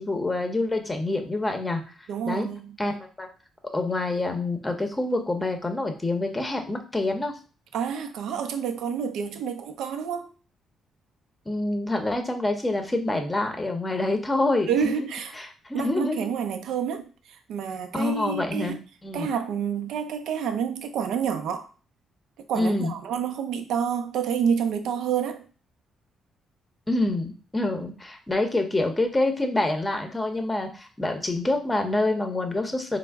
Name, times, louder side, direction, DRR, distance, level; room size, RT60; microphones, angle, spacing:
voice 1, 0.0-1.8 2.3-2.5 2.8-3.3 3.7-7.3 11.5-14.9 15.3-16.3 17.9-19.3 22.6-22.9 26.9-33.0, left 2 dB, 15° left, 0.7 m, -26 dB
voice 2, 2.1-2.8 7.7-10.3 14.7-15.3 15.7-17.1 17.5-18.8 19.1-21.6 22.5-25.4, right 7 dB, 80° right, 0.5 m, -28 dB
4.2 x 2.0 x 3.4 m
cardioid pair, 90°, 0 cm